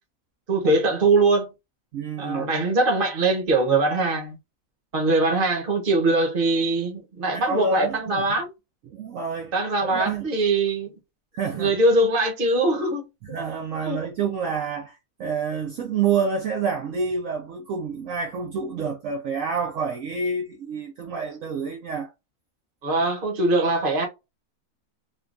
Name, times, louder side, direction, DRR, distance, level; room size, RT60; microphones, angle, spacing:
voice 1, 0.5-1.5 2.2-4.4 4.9-8.5 9.5-10.9 11.5-13.1 13.9-14.0 22.8-24.1, right 2 dB, 40° right, 1.0 m, -22 dB
voice 2, 1.9-2.5 7.3-8.4 8.9-9.5 9.8-10.3 11.3-11.8 13.2-22.1, right 5 dB, 70° right, 0.9 m, -28 dB
3.6 x 2.3 x 2.4 m
omnidirectional pair, 1.6 m